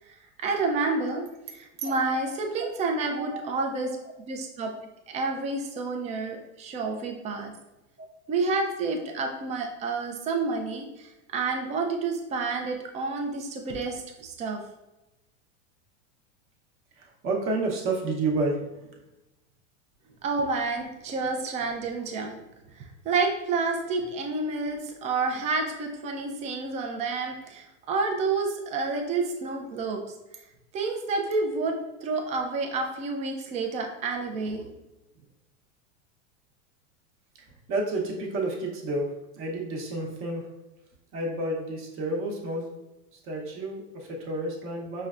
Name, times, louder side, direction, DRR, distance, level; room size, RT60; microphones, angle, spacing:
voice 1, 0.1-4.0 4.3-4.7 5.1-7.5 8.3-14.6 20.2-22.4 22.7-30.0 30.7-34.7, right 3 dB, 20° right, 3 dB, 0.3 m, -29 dB
voice 2, 17.0-18.6 37.7-39.1 39.4-40.5 41.1-42.7 43.2-45.1, right 2 dB, 35° right, -1 dB, 0.8 m, -30 dB
5.3 x 2.2 x 2.4 m, 0.98 s
supercardioid pair, 125°, 38 cm